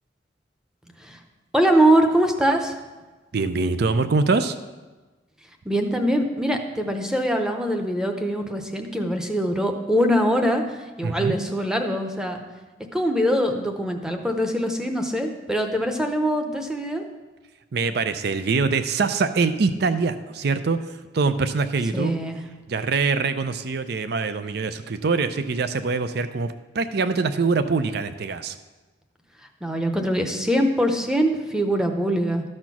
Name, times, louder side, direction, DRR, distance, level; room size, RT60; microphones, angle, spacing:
voice 1, 1.5-2.8 5.6-10.6 11.0-12.4 12.9-17.0 21.9-22.4 29.6-32.4, equal, 5° right, 4 dB, 0.8 m, -23 dB
voice 2, 3.3-4.6 11.0-11.4 17.7-22.2 22.7-28.6, right 4 dB, 60° right, 11 dB, 0.5 m, -24 dB
13.0 x 4.4 x 6.0 m, 1.2 s
head